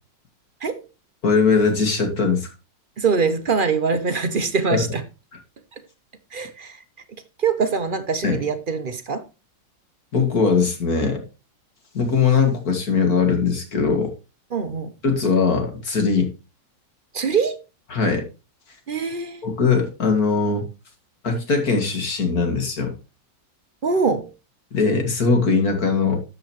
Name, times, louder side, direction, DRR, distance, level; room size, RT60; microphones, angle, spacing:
voice 1, 1.2-2.5 4.7-4.9 8.2-8.5 10.1-11.2 11.9-14.1 15.0-16.3 17.9-18.3 19.4-20.7 21.2-22.9 24.7-26.2, left 5 dB, 55° left, 2.5 m, -20 dB
voice 2, 3.0-5.0 6.3-6.8 7.4-9.2 14.5-14.9 17.1-17.6 18.9-19.4 23.8-24.3, right 5 dB, 50° right, 0.6 m, -23 dB
13.0 x 7.8 x 3.1 m
omnidirectional pair, 2.0 m